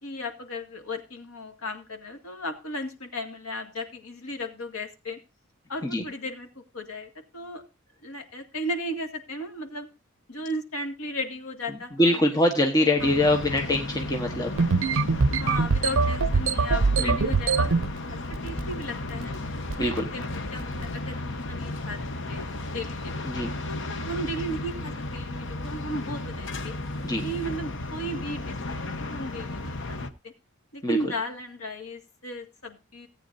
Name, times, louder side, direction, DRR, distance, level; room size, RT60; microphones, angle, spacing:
voice 1, 0.0-5.2 5.7-7.6 8.0-9.9 10.3-12.2 12.6-13.1 15.4-17.8 18.1-19.3 19.7-20.2 20.5-23.2 23.7-26.7 27.2-30.0 30.2-30.3 30.7-33.1, equal, 80° left, 5 dB, 2.2 m, -35 dB
voice 2, 12.0-14.5 17.0-17.1 19.8-20.1 23.2-23.5 27.0-27.2 30.8-31.0, left 1 dB, 20° left, 2 dB, 1.2 m, -23 dB
sound 1, 13.0-30.1, left 2 dB, 60° left, 1.1 m, -34 dB
sound 2, 14.6-17.9 18.3-18.8 19.1-19.4 19.7-20.0 20.6-20.8, right 4 dB, 65° right, 0.6 m, -23 dB
17.5 x 9.0 x 2.7 m, 0.29 s
head